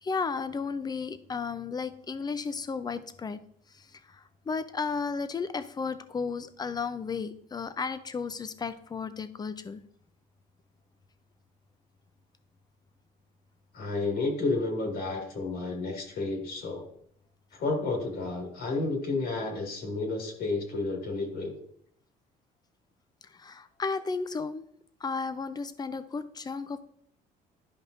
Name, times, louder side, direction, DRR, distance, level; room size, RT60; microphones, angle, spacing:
voice 1, 0.0-3.4 3.7-9.8 23.2-24.6 25.0-26.8, left 5 dB, 25° left, 12 dB, 0.5 m, -34 dB
voice 2, 13.7-16.9 17.5-21.6, left 3 dB, 65° left, 0 dB, 2.1 m, -31 dB
11.5 x 5.3 x 2.6 m, 0.66 s
cardioid pair, 110°, 17 cm